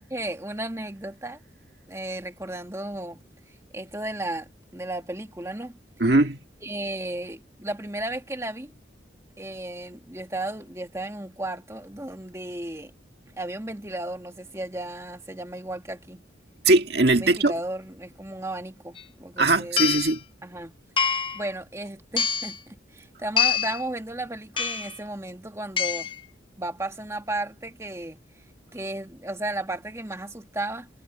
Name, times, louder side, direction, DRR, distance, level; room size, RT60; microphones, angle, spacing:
voice 1, 0.0-1.4 1.9-3.2 3.7-5.8 6.6-8.7 9.4-12.9 13.4-16.2 17.1-19.8 20.4-26.1 26.6-28.2 28.7-30.9, right 1 dB, 15° right, 2.0 m, -34 dB
voice 2, 6.0-6.4 16.7-17.5 19.4-20.2, right 2 dB, 60° right, 1.9 m, -20 dB
sound 1, 19.0-19.1 19.8-20.2 21.0-21.4 22.2-22.6 23.4-23.8 24.6-25.0 25.8-26.2, left 7 dB, 25° left, 1.0 m, -25 dB
head